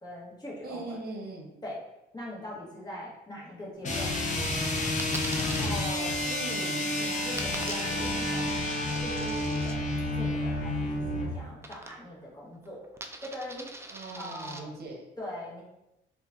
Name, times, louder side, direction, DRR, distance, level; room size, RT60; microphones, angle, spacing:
voice 1, 0.0-1.0 1.6-1.8 2.1-4.1 5.4-6.2 7.0-12.8 13.2-13.7 14.1-14.8 15.2-15.6, left 1 dB, 20° left, -5 dB, 1.3 m, -41 dB
voice 2, 0.6-1.5 6.2-6.9 13.9-15.1, right 3 dB, 50° right, 1 dB, 0.9 m, -40 dB
sound 1, 3.8-11.4, left 1 dB, 40° left, 0.8 m, -30 dB
Coin (dropping), 5.0-5.7 7.4-9.8 11.6-12.3 12.5-14.6, right 2 dB, 15° right, 0.3 m, -43 dB
sound 2, 6.5-11.8, equal, 60° left, 1.2 m, -42 dB
4.3 x 2.4 x 2.6 m, 0.90 s
cardioid pair, 90°, 20 cm